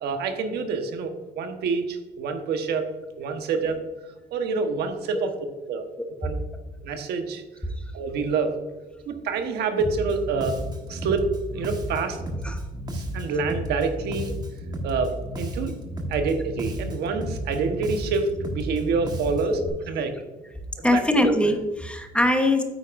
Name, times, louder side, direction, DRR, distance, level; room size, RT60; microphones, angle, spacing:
voice 1, 0.0-2.9 3.2-3.8 4.3-5.3 5.7-5.9 6.2-6.3 6.8-7.4 7.9-8.5 9.1-10.5 10.9-11.3 11.5-12.2 12.9-14.3 14.8-15.7 16.1-19.6 19.9-20.1 20.9-21.0, right 4 dB, 75° right, 6 dB, 1.3 m, -27 dB
Bass guitar, 9.8-19.7, equal, 25° right, 1.5 m, -33 dB
voice 2, 20.8-22.6, left 1 dB, 5° left, 5 dB, 1.1 m, -22 dB
9.4 x 8.5 x 2.6 m, 1.1 s
cardioid pair, 110°, 17 cm